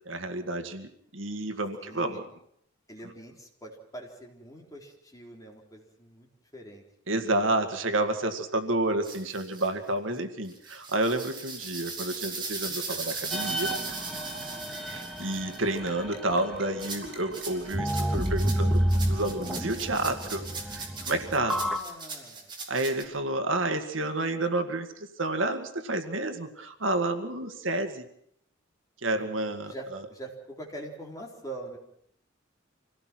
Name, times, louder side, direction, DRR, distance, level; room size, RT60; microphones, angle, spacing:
voice 1, 0.1-2.3 7.1-13.7 14.8-20.4 20.7-21.6 22.7-28.1 29.0-29.7, right 2 dB, 75° right, 6 dB, 2.0 m, -30 dB
voice 2, 1.8-2.2 2.9-6.8 21.5-22.5 29.2-31.8, right 1 dB, 20° left, 0 dB, 3.9 m, -44 dB
sound 1, 9.0-9.7 10.5-15.8 16.8-23.0, right 4 dB, 25° right, 4.7 m, -38 dB
sound 2, 12.1-20.0, right 3 dB, 60° right, 6.6 m, -50 dB
sound 3, 13.3-17.0 17.7-21.8, equal, ahead, 1.9 m, -30 dB
26.0 x 17.5 x 6.1 m, 0.69 s
head